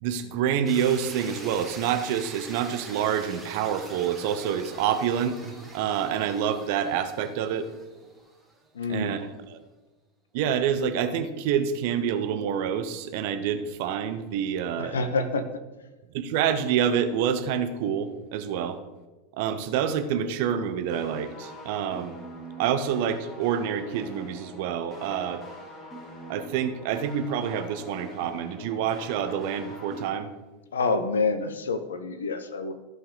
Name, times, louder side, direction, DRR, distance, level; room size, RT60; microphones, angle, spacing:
voice 1, 0.0-7.7 8.9-9.6 10.3-15.0 16.1-18.8 19.4-22.1 22.6-25.4 26.3-30.3, right 8 dB, 55° right, 10 dB, 0.9 m, -27 dB
sound 1, 0.6-8.7, right 3 dB, 5° right, 2.1 m, -44 dB
voice 2, 8.7-9.1 14.8-15.4 30.7-32.7, left 4 dB, 70° left, 10 dB, 0.9 m, -27 dB
sound 2, 20.9-30.1, equal, 20° left, 2.8 m, -44 dB
14.5 x 5.5 x 3.9 m, 1.1 s
figure-of-eight pair, 85°, 0 cm